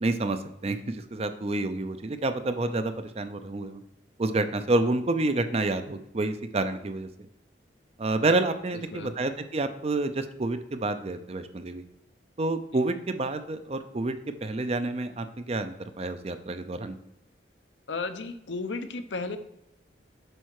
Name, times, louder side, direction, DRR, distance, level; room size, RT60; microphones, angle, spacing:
voice 1, 0.0-3.8 4.2-7.1 8.0-11.8 12.4-14.2 14.4-17.0, right 2 dB, 35° right, 9 dB, 0.5 m, -29 dB
voice 2, 8.7-9.1 17.9-19.4, left 3 dB, 80° left, 9 dB, 0.7 m, -34 dB
7.7 x 5.5 x 4.7 m, 0.80 s
head